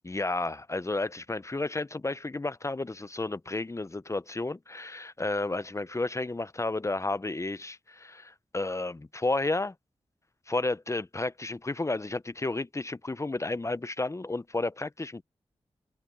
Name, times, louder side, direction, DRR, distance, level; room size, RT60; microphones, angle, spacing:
voice 1, 0.0-9.7 10.5-15.2, left 2 dB, 25° left, 0.8 m, -32 dB
cardioid pair, 40°, 11 cm